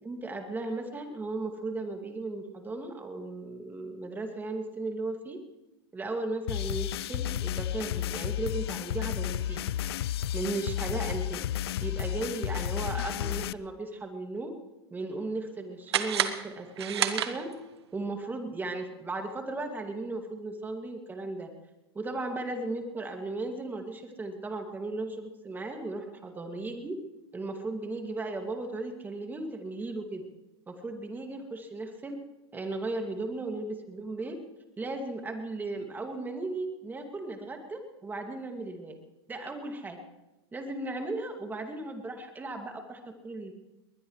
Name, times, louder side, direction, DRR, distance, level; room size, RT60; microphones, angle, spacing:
voice 1, 0.0-5.4 5.9-9.7 10.3-11.4 11.8-14.5 14.9-17.5 17.9-21.5 21.9-26.9 27.3-30.2 30.7-32.2 32.5-34.4 34.8-39.0 39.3-40.0 40.5-43.5, right 2 dB, 15° right, 4 dB, 2.3 m, -36 dB
sound 1, 6.5-13.5, left 11 dB, 70° left, 0.5 m, -32 dB
sound 2, 15.9-17.8, right 9 dB, 85° right, 1.4 m, -30 dB
21.0 x 20.5 x 3.2 m, 1.0 s
hypercardioid pair, 120°, 13 cm